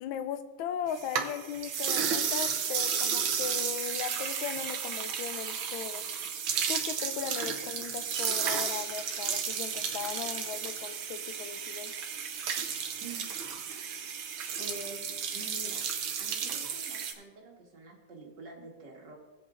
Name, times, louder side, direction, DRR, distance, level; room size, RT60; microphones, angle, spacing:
voice 1, 0.0-6.0 6.7-12.1, left 8 dB, 85° left, 10 dB, 1.4 m, -38 dB
sound 1, 0.9-17.1, right 7 dB, 90° right, 1.7 m, -33 dB
voice 2, 13.0-13.3 13.7-13.9 14.6-15.0 15.3-15.9 16.2-19.2, right 2 dB, 60° right, 0 dB, 2.2 m, -47 dB
17.0 x 8.0 x 2.5 m, 1.3 s
omnidirectional pair, 2.1 m